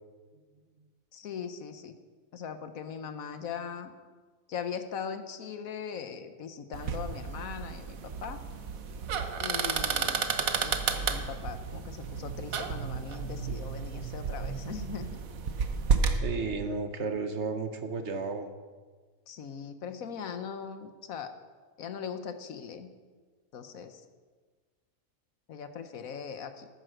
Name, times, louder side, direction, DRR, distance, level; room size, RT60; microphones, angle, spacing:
voice 1, 1.1-2.0 2.3-3.9 4.5-8.4 9.4-10.2 10.6-15.2 19.3-21.3 21.8-22.9 23.5-24.0 25.5-26.7, left 7 dB, 85° left, 9 dB, 1.4 m, -40 dB
sound 1, 6.7-16.2, right 5 dB, 85° right, 1.4 m, -32 dB
voice 2, 16.1-18.5, right 4 dB, 55° right, 8 dB, 1.3 m, -33 dB
14.5 x 9.4 x 6.4 m, 1.5 s
omnidirectional pair, 1.4 m